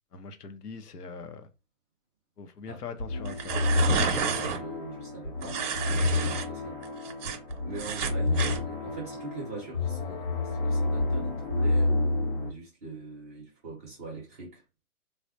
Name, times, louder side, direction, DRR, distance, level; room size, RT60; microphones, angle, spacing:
voice 1, 0.1-1.5 2.4-3.7, left 5 dB, 90° left, 0.7 m, -42 dB
sound 1, 3.0-12.5, left 2 dB, 35° left, 0.6 m, -29 dB
sound 2, 3.2-4.6 5.4-6.5 6.8-8.6, right 6 dB, 55° right, 0.7 m, -31 dB
voice 2, 4.2-6.8 7.7-14.6, right 3 dB, 10° right, 0.5 m, -42 dB
3.4 x 2.0 x 2.5 m
hypercardioid pair, 135°, 45 cm